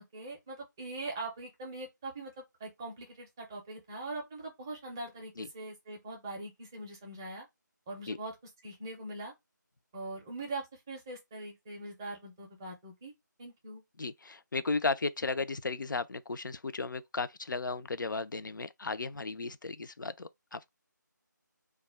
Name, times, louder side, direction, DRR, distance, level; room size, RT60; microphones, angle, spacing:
voice 1, 0.1-2.3 2.6-7.5 7.9-8.3 8.6-9.3 9.9-13.1 13.4-13.8, right 2 dB, 10° right, 0.4 m, -42 dB
voice 2, 14.0-20.7, left 3 dB, 80° left, 0.4 m, -35 dB
2.2 x 2.0 x 3.2 m
figure-of-eight pair, 160°, 10 cm